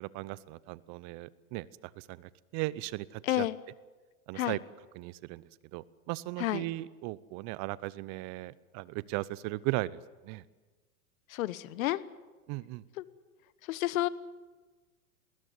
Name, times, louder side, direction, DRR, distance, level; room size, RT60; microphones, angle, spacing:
voice 1, 0.0-1.7 2.0-3.5 4.3-4.6 4.9-5.4 5.7-10.4 12.5-12.8, right 19 dB, 40° right, 20 dB, 0.8 m, -37 dB
voice 2, 3.2-3.6 4.3-4.6 6.4-6.6 11.3-12.0 13.0-13.1 13.7-14.1, left 15 dB, 65° left, 17 dB, 1.2 m, -30 dB
20.0 x 19.5 x 9.5 m, 1.3 s
hypercardioid pair, 125°, 44 cm